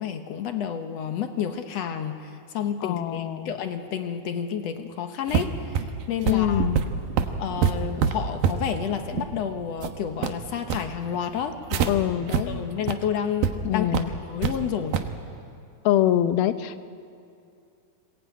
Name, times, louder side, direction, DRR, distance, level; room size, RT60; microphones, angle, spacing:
voice 1, 0.0-6.7 7.4-12.1 12.5-13.9 14.2-15.0, left 8 dB, 70° left, 7 dB, 1.6 m, -30 dB
voice 2, 2.8-3.5 6.2-6.8 11.9-12.7 13.6-14.1 15.9-16.9, left 12 dB, 85° left, 11 dB, 2.7 m, -24 dB
sound 1, 5.3-11.9 12.3-12.4 12.8-12.9 13.4-13.5 13.9-14.6 14.9-15.1, right 7 dB, 75° right, 2.8 m, -26 dB
Bowed string instrument, 6.5-9.1, left 5 dB, 30° left, 1.8 m, -40 dB
25.5 x 20.0 x 9.2 m, 2.5 s
omnidirectional pair, 4.2 m